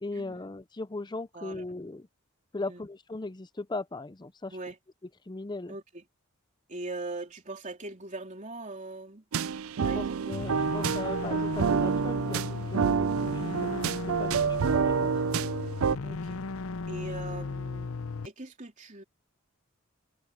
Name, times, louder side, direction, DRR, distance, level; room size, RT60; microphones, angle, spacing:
voice 1, 0.0-2.1 2.5-4.6 5.3-5.7 9.9-15.1, left 2 dB, 20° left, 0.6 m, -38 dB
voice 2, 1.3-1.6 2.6-2.8 4.5-4.8 5.7-6.0 6.7-9.2 9.8-10.2 16.0-16.4 16.9-19.0, right 2 dB, 35° right, 3.5 m, -41 dB
sound 1, 9.3-16.0, right 6 dB, 80° right, 0.5 m, -28 dB
sound 2, 10.3-18.3, left 4 dB, 80° left, 0.7 m, -36 dB
head